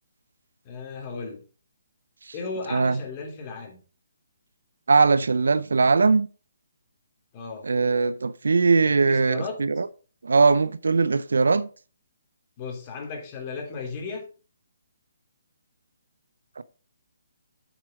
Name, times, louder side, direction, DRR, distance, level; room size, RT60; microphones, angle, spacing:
voice 1, 0.6-1.4 2.3-3.8 7.3-7.7 8.8-9.6 12.6-14.3, left 4 dB, 30° left, 3.3 m, -35 dB
voice 2, 2.7-3.0 4.9-6.3 7.6-9.9 10.2-11.7 16.6-16.7, right 4 dB, 75° right, 0.6 m, -20 dB
8.0 x 7.4 x 5.0 m
figure-of-eight pair, 145°, 0 cm